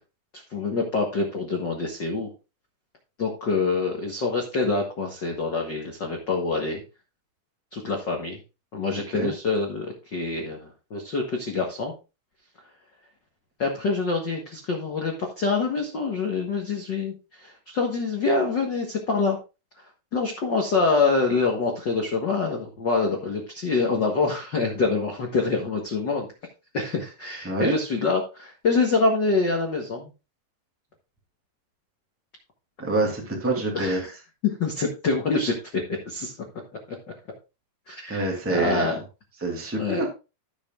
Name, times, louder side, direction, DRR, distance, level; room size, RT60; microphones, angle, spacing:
voice 1, 0.5-2.3 3.2-6.8 7.7-8.4 8.7-11.9 13.6-19.4 20.1-26.3 26.7-30.1 33.7-34.1 34.4-35.5 36.0-36.3 37.9-38.9 39.8-40.1, left 4 dB, 60° left, 1 dB, 1.2 m, -26 dB
voice 2, 8.9-9.3 27.4-27.8 32.8-34.0 38.1-39.0 39.4-40.1, right 2 dB, 5° right, 0 dB, 1.9 m, -26 dB
15.0 x 6.7 x 2.4 m, 0.30 s
omnidirectional pair, 4.3 m